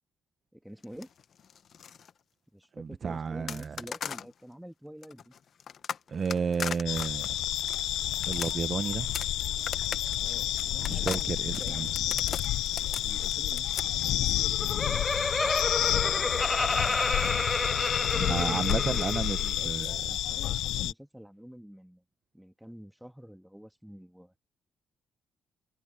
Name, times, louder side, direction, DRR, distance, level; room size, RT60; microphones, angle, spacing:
voice 1, 0.5-1.1 2.5-5.3 10.2-12.4 12.9-14.3 14.6-15.1 18.1-20.0 20.3-22.0 22.3-24.3, equal, ahead, 2.5 m, -48 dB
sound 1, 0.8-2.1 3.5-4.3 5.0-15.6 16.7-19.7, left 7 dB, 55° left, 1.1 m, -40 dB
voice 2, 2.8-3.8 6.1-7.4 8.3-9.2 10.9-11.9 18.2-20.2, right 6 dB, 45° right, 0.8 m, -32 dB
sound 2, 6.9-20.9, left 13 dB, 85° left, 0.5 m, -30 dB
Laughter, 14.3-19.5, left 2 dB, 15° left, 0.4 m, -30 dB
cardioid pair, 90°, 0 cm